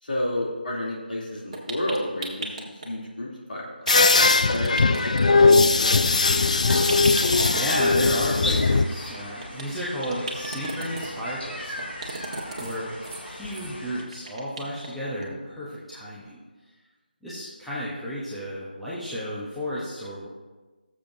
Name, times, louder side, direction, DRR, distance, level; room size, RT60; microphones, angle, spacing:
voice 1, 0.0-4.0 4.5-6.0, left 1 dB, 60° left, -4 dB, 2.9 m, -31 dB
sound 1, 1.5-2.9 3.8-5.2 5.5-5.8 6.0-6.1 6.4-6.5 6.7-8.1 9.0-9.6 10.0-11.1 11.8-12.8 13.0-13.2 13.5-13.7 14.0-14.9 15.2-15.3 15.7-15.8, right 2 dB, 35° right, 1.4 m, -35 dB
sound 2, 3.9-8.8, left 3 dB, 45° left, 0.4 m, -19 dB
sound 3, 5.9-14.0, left 1 dB, 85° left, 2.4 m, -37 dB
voice 2, 6.8-7.2 7.5-12.2 12.6-12.9 13.2-16.4 17.2-20.3, equal, ahead, -12 dB, 0.9 m, -33 dB
18.0 x 7.3 x 2.7 m, 1.2 s
figure-of-eight pair, 170°, 5 cm